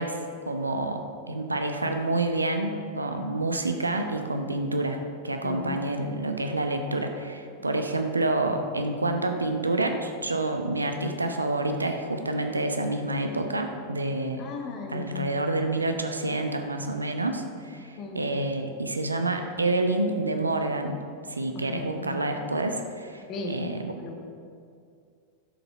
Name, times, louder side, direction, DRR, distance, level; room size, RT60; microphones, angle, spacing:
voice 1, 0.0-5.0 5.2-14.5 14.9-21.0 21.3-23.9, right 2 dB, 80° right, 5 dB, 0.9 m, -28 dB
voice 2, 5.4-5.7 14.4-15.3 18.0-18.2 21.5-22.1 23.3-24.3, left 3 dB, 35° left, 2 dB, 1.7 m, -37 dB
12.0 x 7.0 x 5.5 m, 2.3 s
figure-of-eight pair, 90°, 0 cm